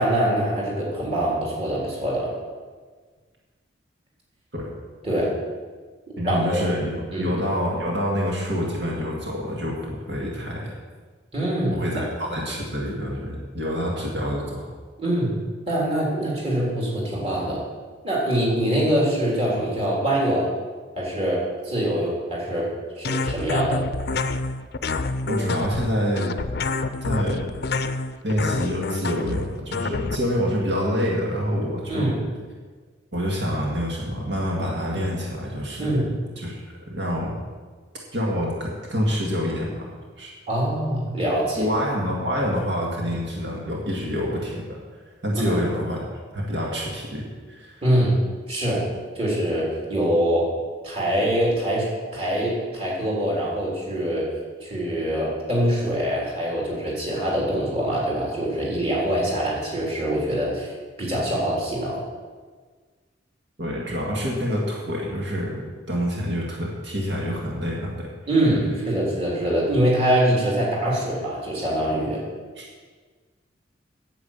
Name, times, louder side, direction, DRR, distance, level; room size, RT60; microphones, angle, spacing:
voice 1, 0.0-2.3 5.0-5.3 6.2-6.6 7.1-7.3 11.3-11.8 15.0-15.4 15.7-17.6 18.0-20.5 21.0-22.7 23.0-23.8 31.9-32.2 35.8-36.1 40.5-41.7 45.3-45.6 47.8-48.2 48.5-48.8 49.2-50.5 50.8-51.9 52.1-54.3 54.6-60.7 61.0-62.0 68.3-72.2, right 1 dB, 30° right, -5 dB, 3.6 m, -24 dB
voice 2, 6.2-10.7 11.7-14.7 25.3-26.4 27.0-27.4 28.2-32.1 33.1-35.9 36.4-36.6 36.9-37.4 38.1-39.9 40.2-40.3 41.6-44.8 45.2-46.0 46.3-47.8 63.6-68.1 72.6-72.7, equal, 75° right, -3 dB, 2.1 m, -27 dB
sound 1, 23.0-30.2, left 3 dB, 55° left, 0.5 m, -27 dB
9.6 x 8.6 x 7.3 m, 1.5 s
head